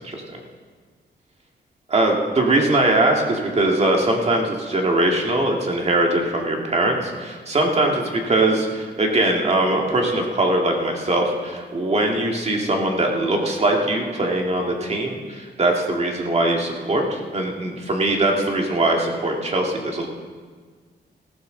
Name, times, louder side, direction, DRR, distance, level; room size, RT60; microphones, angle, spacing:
voice 1, 1.9-8.7 9.0-20.1, right 2 dB, 35° right, 1 dB, 2.1 m, -21 dB
19.0 x 14.5 x 4.0 m, 1.6 s
wide cardioid pair, 135°, 18 cm